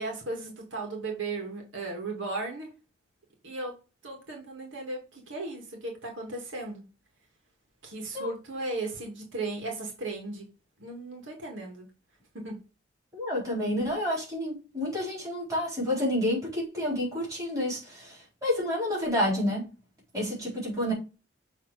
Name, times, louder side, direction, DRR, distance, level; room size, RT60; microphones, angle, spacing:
voice 1, 0.0-2.7 3.4-3.7 4.0-6.8 7.8-10.5 10.8-11.9 12.3-12.6, right 2 dB, 85° right, 2.1 m, -36 dB
voice 2, 13.1-19.7 20.1-20.9, left 1 dB, 15° right, 4.3 m, -29 dB
7.0 x 3.5 x 4.9 m
head